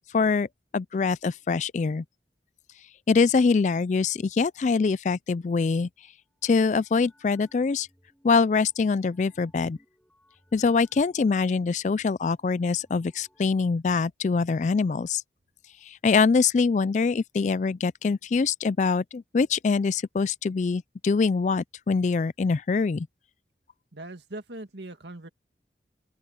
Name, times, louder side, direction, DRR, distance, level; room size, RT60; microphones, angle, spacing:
voice 1, 0.1-0.5 0.7-2.0 3.1-5.9 6.4-7.9 8.2-9.8 10.5-15.2 15.9-23.1, left 4 dB, 40° left, 0.3 m, -24 dB
sound 1, 6.3-13.7, equal, 5° left, 6.0 m, -64 dB
voice 2, 23.9-25.3, right 2 dB, 80° right, 2.0 m, -40 dB
open air
head